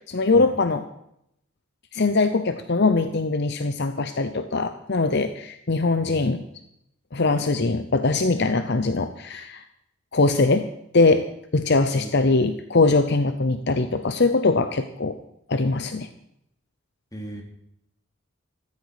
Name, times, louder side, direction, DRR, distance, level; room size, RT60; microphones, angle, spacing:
voice 1, 0.1-0.8 1.9-6.4 7.1-9.6 10.1-10.7 10.9-15.2 15.5-16.1, left 3 dB, 55° left, 10 dB, 0.8 m, -22 dB
voice 2, 17.1-17.4, right 1 dB, 15° left, 1 dB, 3.0 m, -35 dB
15.0 x 14.5 x 5.0 m, 0.76 s
head